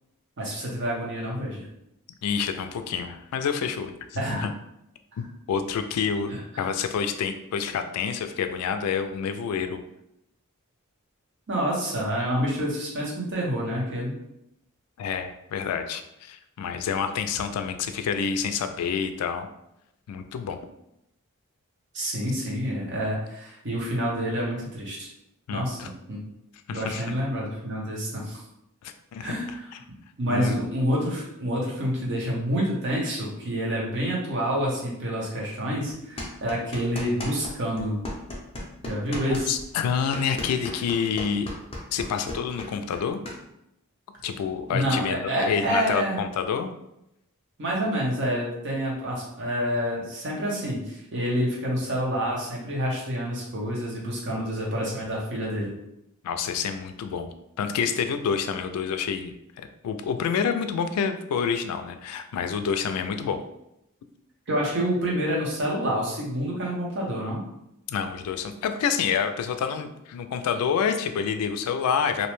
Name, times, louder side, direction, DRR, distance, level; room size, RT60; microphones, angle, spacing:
voice 1, 0.4-1.7 4.2-4.5 6.5-6.7 11.5-14.2 21.9-25.1 25.5-26.2 26.7-28.4 29.2-29.5 30.2-38.0 38.8-39.5 44.7-46.2 47.6-55.7 64.5-67.4, equal, 55° right, -3 dB, 0.8 m, -28 dB
voice 2, 2.2-4.5 5.2-9.8 15.0-19.5 20.1-20.6 25.5-25.9 26.7-27.2 28.8-29.6 30.3-30.6 39.1-41.5 41.9-43.2 44.2-46.7 56.2-57.3 57.6-63.4 67.9-72.3, left 6 dB, 85° left, 11 dB, 0.3 m, -28 dB
sound 1, 36.2-37.5 37.8-43.4, left 1 dB, 25° left, 0.5 m, -35 dB
2.6 x 2.1 x 3.0 m, 0.82 s
head